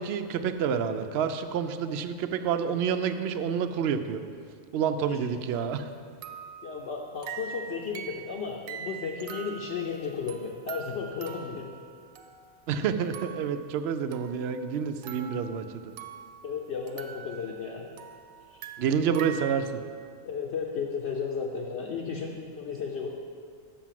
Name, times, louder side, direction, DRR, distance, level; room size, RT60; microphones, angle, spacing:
voice 1, 0.0-4.2 4.7-5.8 12.7-15.9 18.8-19.7, right 7 dB, 65° right, 9 dB, 0.7 m, -28 dB
sound 1, 5.5-5.7 6.2-12.7 13.1-13.6 14.1-16.5 16.9-19.6, right 7 dB, 85° right, 1.0 m, -43 dB
voice 2, 6.6-11.7 16.4-17.9 18.5-18.6 20.2-23.2, left 5 dB, 60° left, -2 dB, 1.0 m, -34 dB
6.9 x 6.0 x 7.4 m, 2.2 s
omnidirectional pair, 1.4 m